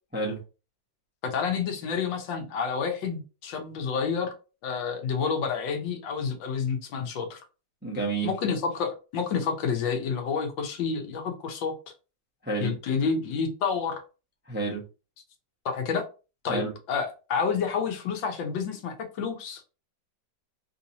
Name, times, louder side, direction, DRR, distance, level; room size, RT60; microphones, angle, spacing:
voice 1, 1.2-4.3 4.6-7.4 8.2-11.7 12.6-14.0 15.6-16.1 16.4-16.6 16.9-19.6, left 6 dB, 85° left, 4 dB, 1.5 m, -29 dB
voice 2, 7.8-8.3 12.4-12.7 14.5-14.8 16.5-16.7, right 3 dB, 15° right, -3 dB, 0.3 m, -29 dB
3.6 x 2.7 x 2.8 m, 0.33 s
omnidirectional pair, 2.0 m